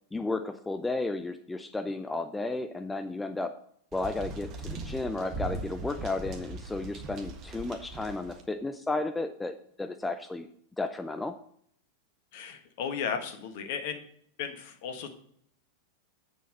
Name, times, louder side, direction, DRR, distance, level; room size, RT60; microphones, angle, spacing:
voice 1, 0.1-3.5 3.9-10.5 10.8-11.4, left 2 dB, 10° left, 8 dB, 0.6 m, -33 dB
sound 1, 3.9-8.4, right 3 dB, 35° right, 1.5 m, -40 dB
voice 2, 12.3-14.0 14.4-15.1, left 7 dB, 50° left, 7 dB, 1.5 m, -35 dB
8.5 x 7.1 x 5.4 m, 0.64 s
figure-of-eight pair, 90°, 0 cm